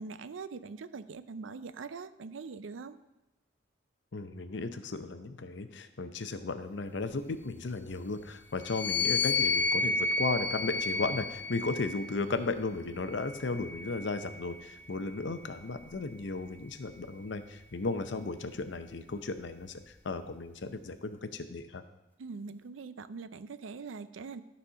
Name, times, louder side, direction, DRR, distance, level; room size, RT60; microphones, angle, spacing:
voice 1, 0.0-3.0 22.2-24.4, right 4 dB, 90° right, 13 dB, 0.4 m, -42 dB
voice 2, 4.1-21.8, left 3 dB, 70° left, 10 dB, 0.6 m, -35 dB
sound 1, 8.6-12.2 13.0-14.6, left 3 dB, 10° left, 0.3 m, -31 dB
12.5 x 4.2 x 5.7 m, 1.0 s
head